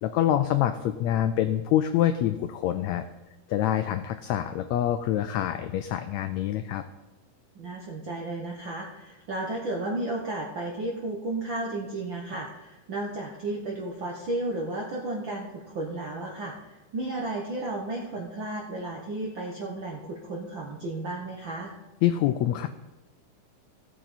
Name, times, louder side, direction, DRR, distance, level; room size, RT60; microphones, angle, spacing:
voice 1, 0.0-3.0 3.5-6.8 22.0-22.7, left 11 dB, 90° left, 9 dB, 1.5 m, -26 dB
voice 2, 7.6-21.7, right 2 dB, 65° right, -1 dB, 1.2 m, -33 dB
16.5 x 7.4 x 4.2 m, 1.1 s
omnidirectional pair, 3.8 m